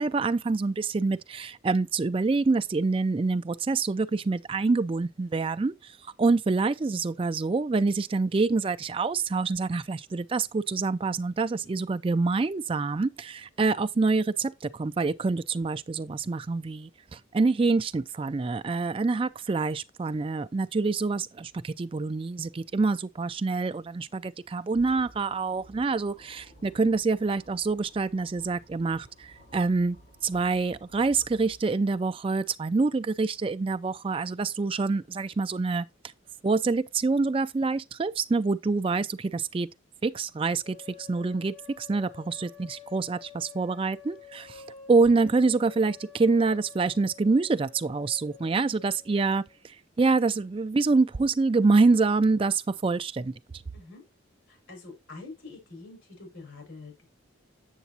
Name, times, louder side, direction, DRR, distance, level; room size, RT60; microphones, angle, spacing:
voice 1, 0.0-30.0 30.2-35.9 36.4-39.7 40.0-44.6 44.9-53.3, right 3 dB, 25° right, 0.3 m, -26 dB
sound 1, 24.7-32.0, right 1 dB, 55° left, 4.4 m, -55 dB
sound 2, 40.6-49.6, left 9 dB, 25° left, 3.4 m, -50 dB
voice 2, 54.5-57.0, left 3 dB, 75° left, 5.2 m, -45 dB
8.1 x 6.8 x 2.8 m
head